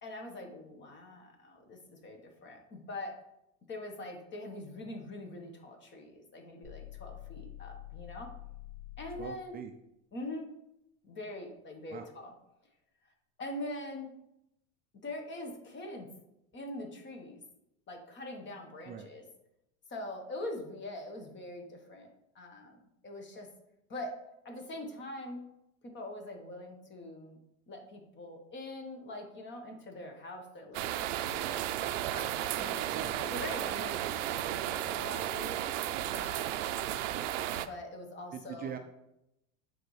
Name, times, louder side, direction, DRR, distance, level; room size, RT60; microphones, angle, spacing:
voice 1, 0.0-3.2 3.7-8.3 9.0-9.6 10.1-10.5 11.0-12.3 13.4-14.1 15.0-16.1 16.5-17.4 17.9-19.2 19.9-22.1 22.3-23.5 23.9-24.2 24.4-25.5 25.8-27.4 27.7-31.7 32.1-35.6 36.1-36.5 37.5-38.7, left 1 dB, 30° left, 4 dB, 1.3 m, -43 dB
sound 1, 6.6-9.4, left 12 dB, 80° left, 1.7 m, -47 dB
voice 2, 9.2-9.7 11.9-12.1 18.9-19.1 32.9-33.2 38.3-38.8, right 7 dB, 25° right, 5 dB, 0.5 m, -42 dB
sound 2, 30.7-37.7, right 12 dB, 70° right, 0.6 m, -34 dB
9.0 x 4.1 x 3.2 m, 0.84 s
supercardioid pair, 110°, 38 cm